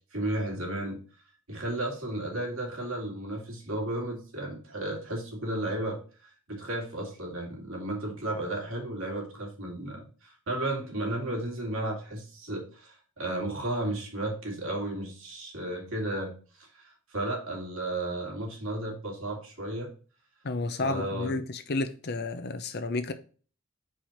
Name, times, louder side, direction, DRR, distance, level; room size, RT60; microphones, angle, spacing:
voice 1, 0.1-1.0 1.5-19.9 20.8-21.4, right 1 dB, 70° right, 2.6 m, -34 dB
voice 2, 20.4-23.1, left 2 dB, 50° left, 0.7 m, -31 dB
4.8 x 4.5 x 5.7 m
head